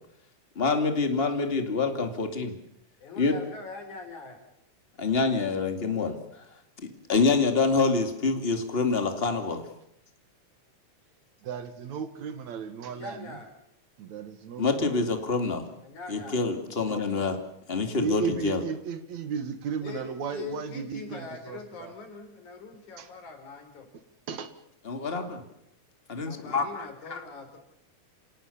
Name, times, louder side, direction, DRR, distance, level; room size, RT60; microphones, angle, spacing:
voice 1, 0.6-2.5 3.2-3.3 5.0-6.4 7.1-9.6 14.6-15.7 16.1-17.4 17.7-18.6 24.9-25.4 26.1-27.2, left 4 dB, 20° left, 6 dB, 2.3 m, -26 dB
voice 2, 3.0-4.5 12.9-13.5 15.8-16.5 19.8-23.9 26.2-27.6, left 4 dB, 75° left, 6 dB, 5.4 m, -42 dB
voice 3, 11.4-13.4 14.0-14.9 16.9-17.0 18.0-21.9 23.0-23.1 24.3-24.5, right 6 dB, 70° right, 11 dB, 2.8 m, -34 dB
28.0 x 17.5 x 7.1 m, 0.76 s
omnidirectional pair, 3.5 m